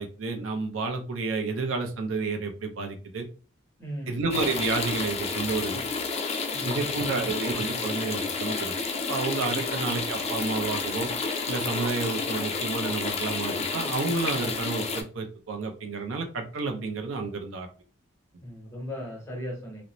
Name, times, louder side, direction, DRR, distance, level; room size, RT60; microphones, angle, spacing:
voice 1, 0.0-3.3 4.1-5.8 6.7-8.7 9.1-11.1 11.5-17.7, right 3 dB, 80° right, 4 dB, 0.5 m, -30 dB
voice 2, 3.8-4.2 6.5-7.3 18.4-19.8, equal, 15° left, -1 dB, 1.1 m, -38 dB
sound 1, 4.3-15.0, left 4 dB, 30° left, 0.3 m, -30 dB
2.5 x 2.0 x 2.9 m, 0.37 s
head